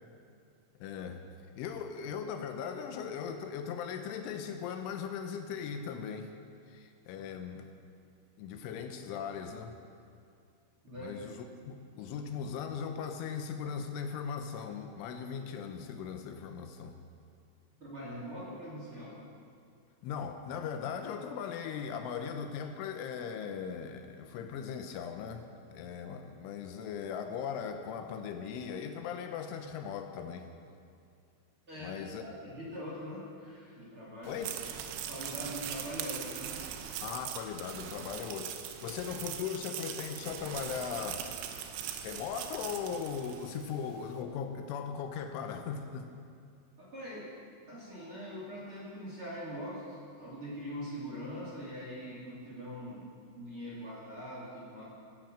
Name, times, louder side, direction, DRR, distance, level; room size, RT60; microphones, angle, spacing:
voice 1, 0.8-1.2 1.6-6.3 6.7-7.7 8.4-9.8 11.0-17.0 20.0-30.5 31.8-32.3 34.3-34.6 37.0-41.2 42.0-46.1, left 7 dB, 80° left, 6 dB, 3.2 m, -39 dB
voice 2, 17.8-19.2 31.7-32.0 32.2-34.4 35.1-36.5 46.8-47.3 47.7-54.8, equal, 35° right, -6 dB, 2.7 m, -42 dB
sound 1, 34.2-43.8, right 9 dB, 90° right, 3.7 m, -41 dB
13.5 x 11.5 x 7.6 m, 2.3 s
omnidirectional pair, 5.8 m